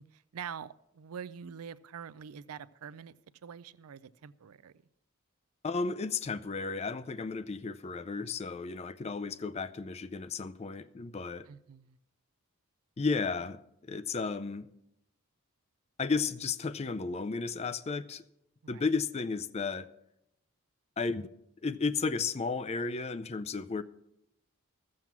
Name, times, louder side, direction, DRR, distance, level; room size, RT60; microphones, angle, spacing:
voice 1, 0.0-3.2 3.4-4.7 11.5-12.0 18.6-18.8, right 7 dB, 85° right, 0.4 m, -45 dB
voice 2, 5.6-11.5 13.0-14.7 16.0-18.2 18.7-19.9 21.0-21.3 21.6-23.8, left 4 dB, 30° left, 0.4 m, -33 dB
13.5 x 7.5 x 5.9 m
head